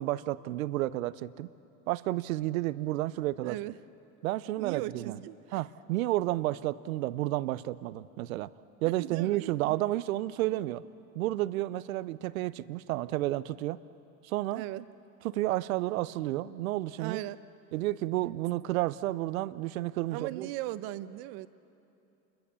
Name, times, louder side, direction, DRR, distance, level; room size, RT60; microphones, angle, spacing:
voice 1, 0.0-1.5 1.9-3.6 4.2-5.2 5.5-8.5 8.8-10.8 11.1-13.8 14.2-14.6 15.2-17.2 17.7-20.5, right 16 dB, 80° right, 17 dB, 0.7 m, -31 dB
voice 2, 3.4-3.8 4.6-5.6 9.0-9.8 14.5-14.9 17.0-17.4 20.1-21.5, right 16 dB, 55° right, 14 dB, 1.0 m, -38 dB
28.0 x 22.0 x 7.0 m, 2.8 s
hypercardioid pair, 95°, 41 cm